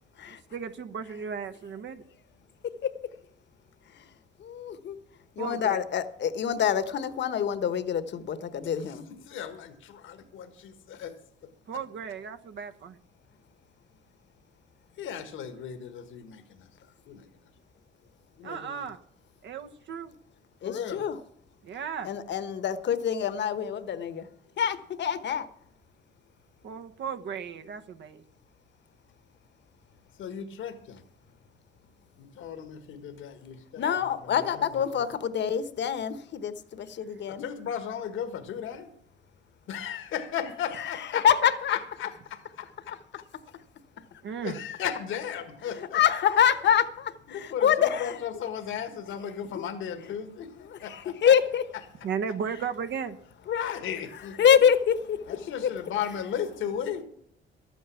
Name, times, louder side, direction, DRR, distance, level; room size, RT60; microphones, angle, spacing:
voice 1, 0.3-2.0 5.4-5.8 11.7-13.0 18.4-19.0 19.4-20.1 21.6-22.1 26.6-28.2 44.2-44.6 52.0-53.2, right 7 dB, 65° right, 10 dB, 1.2 m, -35 dB
voice 2, 4.4-5.0 5.4-9.0 20.6-21.2 22.0-24.3 24.6-25.5 33.8-37.4 40.8-41.8 45.7-48.2 49.5-49.6 50.7-51.6 54.4-55.7, left 8 dB, 65° left, 12 dB, 1.2 m, -26 dB
voice 3, 8.9-11.1 15.0-16.7 17.1-17.3 18.4-18.9 20.6-21.0 30.2-31.0 32.2-35.1 37.3-38.9 39.7-43.0 44.4-46.0 47.3-51.3 53.5-54.4 55.3-57.0, left 8 dB, 80° left, 8 dB, 1.5 m, -36 dB
12.5 x 9.3 x 7.0 m, 0.71 s
cardioid pair, 90°, 20 cm